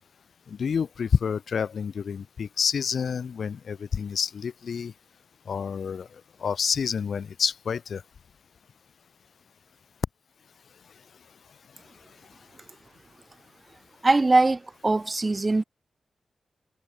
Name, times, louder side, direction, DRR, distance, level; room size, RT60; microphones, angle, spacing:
voice 1, 0.5-4.9 5.5-6.1 6.4-8.0, left 6 dB, 75° left, 1.3 m, -28 dB
voice 2, 14.0-15.6, right 2 dB, 30° right, 1.3 m, -21 dB
cardioid pair, 75°, 0 cm